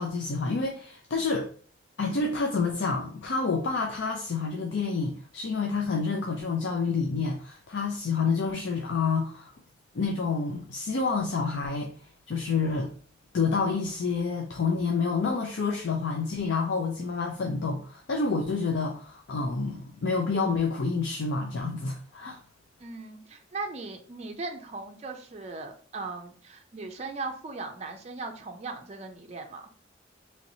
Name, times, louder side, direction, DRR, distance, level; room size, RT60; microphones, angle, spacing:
voice 1, 0.0-1.5 2.0-9.5 9.9-11.9 12.3-12.9 13.3-22.4, left 4 dB, 70° left, 2 dB, 0.5 m, -28 dB
voice 2, 22.8-29.7, right 3 dB, 35° right, 4 dB, 0.4 m, -38 dB
3.1 x 2.9 x 2.6 m, 0.43 s
head